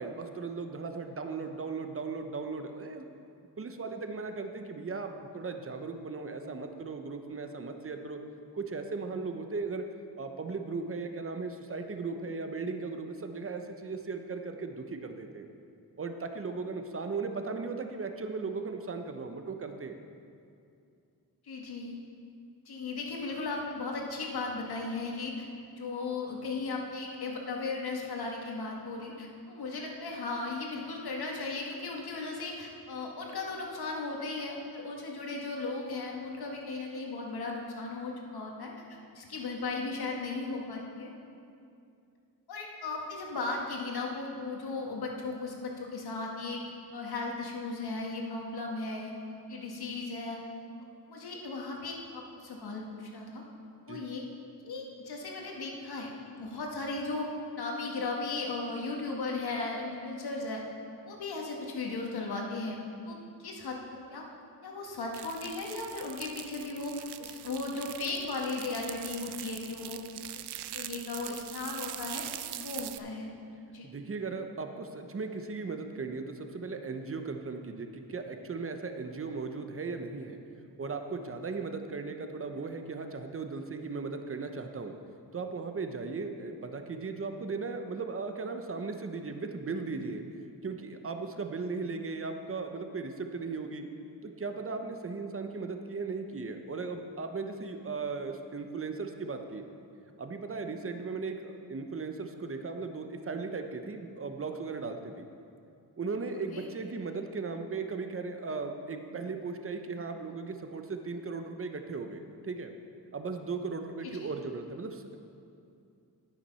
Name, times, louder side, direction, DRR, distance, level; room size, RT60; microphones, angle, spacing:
voice 1, 0.0-3.1 3.6-8.2 8.5-9.8 10.2-15.5 16.0-20.0 53.9-54.0 73.8-80.4 80.8-85.0 85.3-90.2 90.6-93.8 94.2-99.6 100.2-105.3 106.0-112.7 113.1-115.2, right 4 dB, 35° right, 6 dB, 1.0 m, -37 dB
voice 2, 21.4-22.0 22.7-25.5 25.8-41.1 42.5-46.6 46.9-49.1 49.5-50.4 51.1-53.4 53.9-54.2 54.6-57.3 57.6-60.6 61.1-62.8 63.0-64.2 64.6-70.0 70.7-72.2 72.6-73.3 73.7-73.9 106.5-106.7 114.0-114.3, left 3 dB, 70° left, 0 dB, 1.9 m, -36 dB
sound 1, 65.1-73.0, right 12 dB, 85° right, 0.6 m, -42 dB
10.0 x 8.9 x 5.6 m, 2.5 s
cardioid pair, 80°, 39 cm